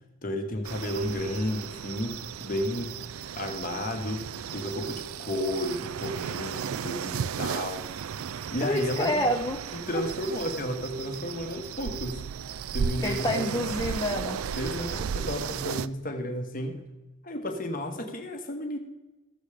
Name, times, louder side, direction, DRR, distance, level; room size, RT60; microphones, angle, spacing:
voice 1, 0.2-2.9 3.3-4.3 4.5-7.9 8.5-9.3 9.7-12.2 12.7-13.5 14.5-16.8 17.2-18.8, equal, 40° left, 5 dB, 1.4 m, -32 dB
sound 1, 0.6-15.9, right 7 dB, 85° right, 0.4 m, -35 dB
voice 2, 8.6-9.6 9.9-10.0 13.0-14.4, left 1 dB, 15° left, 1 dB, 0.7 m, -28 dB
14.5 x 7.2 x 5.0 m, 1.1 s
head